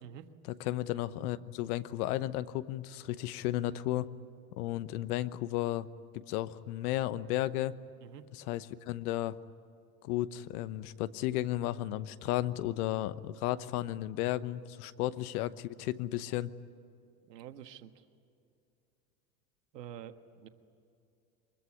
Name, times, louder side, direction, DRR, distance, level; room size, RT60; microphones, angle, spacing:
voice 1, 0.5-4.1 4.6-5.9 6.1-7.8 8.3-9.3 10.0-16.5, left 14 dB, 65° left, 15 dB, 1.1 m, -34 dB
voice 2, 17.3-18.0 19.7-20.5, right 10 dB, 80° right, 9 dB, 1.6 m, -47 dB
24.0 x 21.5 x 9.9 m, 2.5 s
hypercardioid pair, 90°, 48 cm